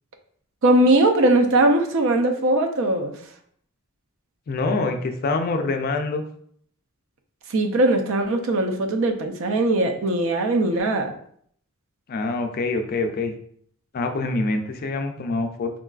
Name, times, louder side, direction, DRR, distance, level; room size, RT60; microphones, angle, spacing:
voice 1, 0.6-3.1 7.5-11.1, right 1 dB, 65° right, 5 dB, 0.4 m, -20 dB
voice 2, 4.5-6.2 12.1-13.3 13.9-15.7, left 3 dB, 45° left, 6 dB, 0.3 m, -25 dB
3.7 x 2.4 x 2.3 m, 0.63 s
head